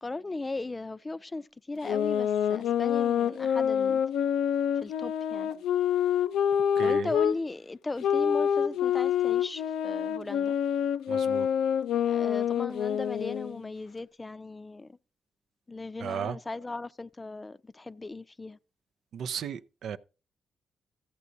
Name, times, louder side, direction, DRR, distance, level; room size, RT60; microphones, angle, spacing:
voice 1, 0.0-4.0 4.7-5.5 6.8-10.6 11.9-15.0 15.7-18.6, left 3 dB, 25° left, 0.5 m, -37 dB
sound 1, 1.8-7.4 8.0-13.6, left 9 dB, 85° left, 0.4 m, -27 dB
voice 2, 6.5-7.1 11.1-11.5 16.0-16.4 19.1-20.0, right 8 dB, 75° right, 0.5 m, -35 dB
14.0 x 8.2 x 2.6 m
supercardioid pair, 60°, 0 cm